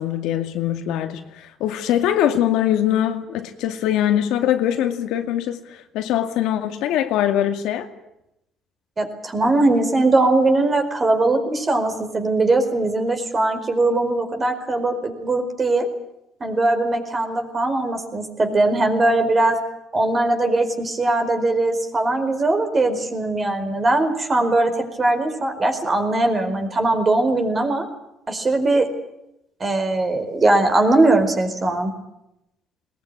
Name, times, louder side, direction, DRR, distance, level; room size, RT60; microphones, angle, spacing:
voice 1, 0.0-7.9, left 11 dB, 85° left, 2.3 m, -22 dB
voice 2, 9.0-15.9 16.4-19.6 19.9-27.9 28.3-28.9 29.6-31.9, right 2 dB, 25° right, 4.6 m, -20 dB
21.0 x 20.5 x 9.9 m
cardioid pair, 125°, 0 cm